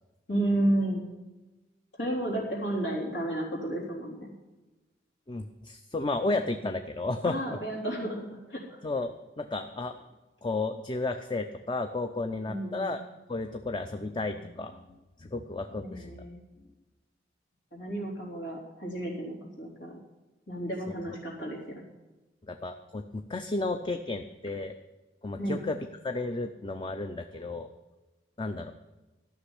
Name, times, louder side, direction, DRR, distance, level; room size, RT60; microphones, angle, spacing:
voice 1, 0.3-1.1 2.0-4.3 7.2-8.8 12.5-12.9 15.7-16.4 17.7-19.9 20.5-21.8 25.4-25.6, right 1 dB, 85° left, -2 dB, 3.6 m, -32 dB
voice 2, 5.3-7.6 8.8-10.0 10.4-13.0 13.3-16.1 22.5-24.7 25.2-25.8 26.0-27.7 28.4-28.7, left 2 dB, 25° left, 7 dB, 0.5 m, -33 dB
13.0 x 6.1 x 9.8 m, 1.1 s
head